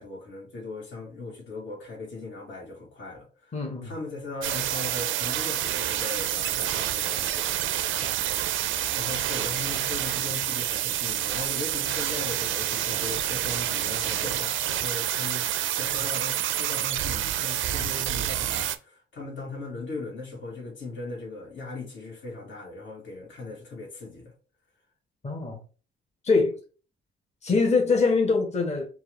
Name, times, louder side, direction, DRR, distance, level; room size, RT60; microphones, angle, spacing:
voice 1, 0.0-3.5 3.8-7.5 8.9-15.5 15.8-24.3, left 3 dB, 70° left, 1.8 m, -38 dB
voice 2, 3.5-3.9 8.0-8.2 25.2-25.6 26.2-26.6 27.4-28.9, left 4 dB, 35° left, 1.3 m, -23 dB
sound 1, 4.4-18.8, right 12 dB, 75° right, 0.4 m, -28 dB
4.5 x 2.4 x 3.2 m
cardioid pair, 90°, 20 cm